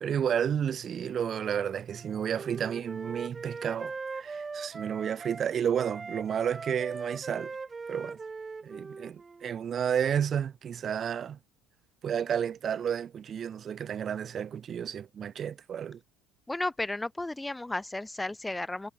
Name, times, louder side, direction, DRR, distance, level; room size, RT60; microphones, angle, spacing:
voice 1, 0.0-7.5 7.9-8.2 8.6-11.4 12.0-16.0, right 8 dB, 45° right, 0.4 m, -31 dB
Wind instrument woodwind instrument, 1.9-5.4 5.8-9.5, right 4 dB, 25° right, 1.6 m, -40 dB
voice 2, 16.5-18.9, left 2 dB, 10° left, 1.9 m, -33 dB
supercardioid pair, 90°, 0 cm